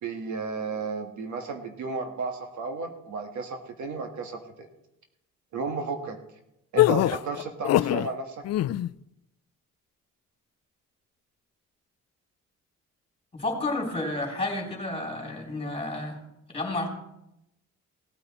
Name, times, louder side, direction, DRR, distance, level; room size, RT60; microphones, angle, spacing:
voice 1, 0.0-4.7 5.5-6.2 6.7-8.4, right 4 dB, 70° right, 5 dB, 1.8 m, -33 dB
sound 1, 6.8-8.1 8.4-8.9, left 14 dB, 60° left, 0.4 m, -22 dB
voice 2, 13.3-16.2 16.5-16.9, left 2 dB, 20° left, 1 dB, 3.6 m, -31 dB
17.0 x 9.0 x 4.3 m, 0.86 s
cardioid pair, 90°, 30 cm